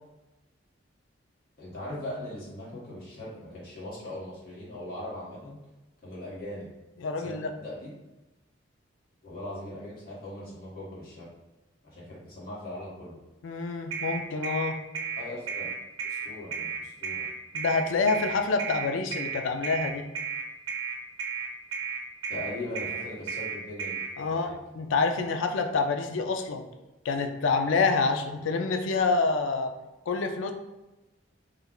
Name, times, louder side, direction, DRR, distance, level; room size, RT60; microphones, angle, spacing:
voice 1, 1.6-5.6 6.0-6.7 7.2-7.9 9.2-11.3 11.8-13.2 15.2-15.7 16.0-17.3 22.3-24.5, left 1 dB, 50° left, -8 dB, 1.3 m, -40 dB
voice 2, 7.0-7.5 13.4-14.8 17.5-20.1 24.2-26.7 27.0-29.7 30.1-30.5, left 4 dB, 80° left, 5 dB, 0.4 m, -27 dB
sound 1, 13.9-24.1, right 6 dB, 85° right, 0.6 m, -33 dB
3.2 x 2.3 x 3.7 m, 1.0 s
head